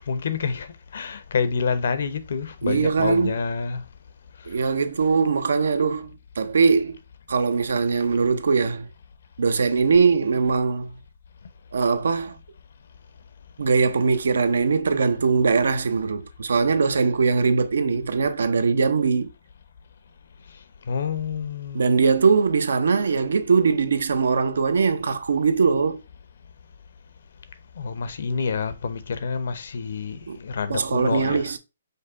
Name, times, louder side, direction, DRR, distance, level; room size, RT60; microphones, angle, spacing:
voice 1, 0.1-0.7 0.9-3.8 20.9-22.0 27.8-31.5, left 5 dB, 60° left, 0.7 m, -28 dB
voice 2, 2.6-3.4 4.5-7.0 7.3-8.9 9.4-10.9 11.7-12.4 13.6-19.3 21.7-26.0 30.3-30.4 30.7-31.6, right 5 dB, 75° right, 0.6 m, -21 dB
5.3 x 2.2 x 3.7 m
hypercardioid pair, 165°, 0 cm